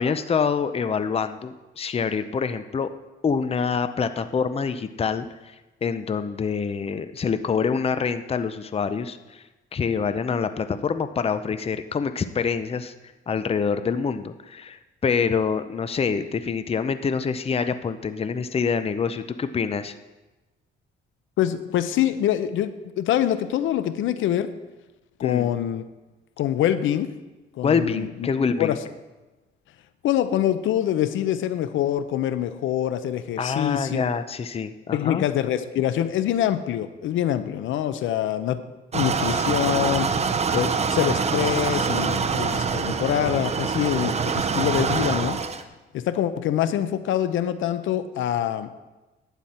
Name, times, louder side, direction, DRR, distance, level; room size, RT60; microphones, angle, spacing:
voice 1, 0.0-2.9 3.2-5.3 5.8-9.4 9.7-12.9 13.3-20.0 25.2-25.5 27.6-28.8 33.4-35.2, left 6 dB, 30° left, 11 dB, 0.6 m, -26 dB
voice 2, 21.4-22.7 23.0-24.5 25.2-25.8 26.4-27.1 27.6-28.3 28.6-28.8 30.0-34.0 34.9-38.6 38.9-40.1 40.5-45.4 45.9-48.7, left 11 dB, 80° left, 12 dB, 0.7 m, -25 dB
sound 1, 38.9-45.6, right 5 dB, 35° right, 0.7 m, -25 dB
11.5 x 9.1 x 4.3 m, 1.1 s
cardioid pair, 90°, 20 cm